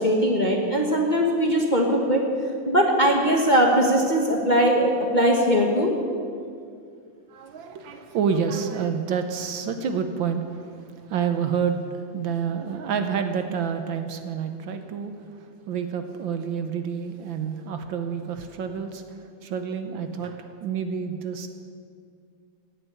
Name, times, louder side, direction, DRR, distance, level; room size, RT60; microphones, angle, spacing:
voice 1, 0.0-2.2 2.7-5.9, equal, 25° left, -1 dB, 1.2 m, -20 dB
voice 2, 7.3-21.5, right 6 dB, 70° right, 7 dB, 1.5 m, -29 dB
16.5 x 6.8 x 9.2 m, 2.3 s
omnidirectional pair, 2.4 m